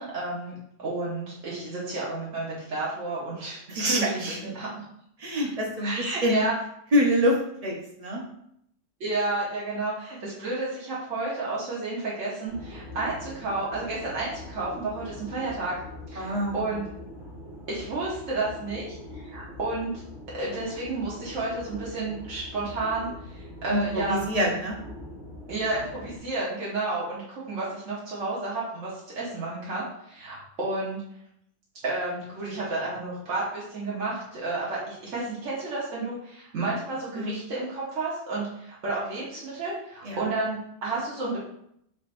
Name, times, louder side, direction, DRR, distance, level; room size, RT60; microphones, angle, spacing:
voice 1, 0.0-4.8 5.8-6.5 9.0-15.7 16.1-16.8 17.7-19.9 20.3-24.2 25.5-31.0 31.8-41.4, right 2 dB, 75° right, -7 dB, 1.4 m, -31 dB
voice 2, 3.7-4.4 5.2-6.4 6.9-8.2 16.2-16.8 23.7-24.8 37.1-37.4 40.0-40.3, equal, 35° right, -1 dB, 0.7 m, -26 dB
sound 1, 12.5-26.2, left 1 dB, 20° right, 1.8 m, -43 dB
5.0 x 3.3 x 2.5 m, 0.73 s
omnidirectional pair, 1.3 m